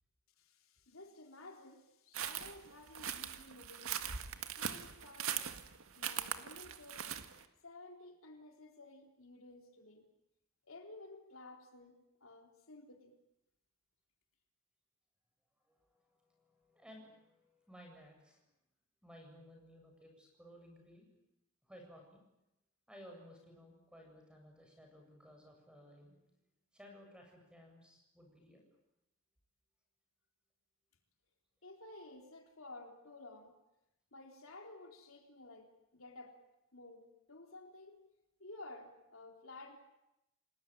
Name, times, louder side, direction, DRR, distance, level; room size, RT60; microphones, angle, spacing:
voice 1, 0.4-3.9 4.6-5.6 5.9-7.1 7.6-10.1 10.6-13.2 31.6-33.5 34.1-36.4 36.7-38.0 38.4-39.8, left 2 dB, 70° left, 3 dB, 3.8 m, -54 dB
sound 1, 2.1-7.4, right 9 dB, 80° right, 1.9 m, -41 dB
voice 2, 15.6-18.4 19.0-21.1 21.6-22.2 22.9-26.4 26.7-28.7, equal, 5° right, 2 dB, 7.8 m, -58 dB
29.5 x 20.0 x 9.2 m, 0.89 s
head